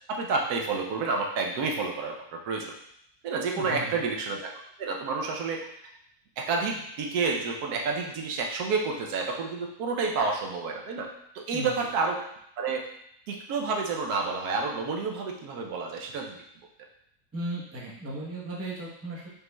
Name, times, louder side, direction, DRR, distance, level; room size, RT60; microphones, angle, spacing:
voice 1, 0.1-2.7 3.2-4.5 4.8-5.7 6.4-12.3 12.6-12.9 13.3-16.4, right 4 dB, 80° right, 1 dB, 1.1 m, -29 dB
voice 2, 3.5-4.0 11.5-11.7 17.3-19.3, right 1 dB, 20° right, -5 dB, 0.4 m, -36 dB
5.1 x 3.0 x 2.2 m, 0.72 s
omnidirectional pair, 1.7 m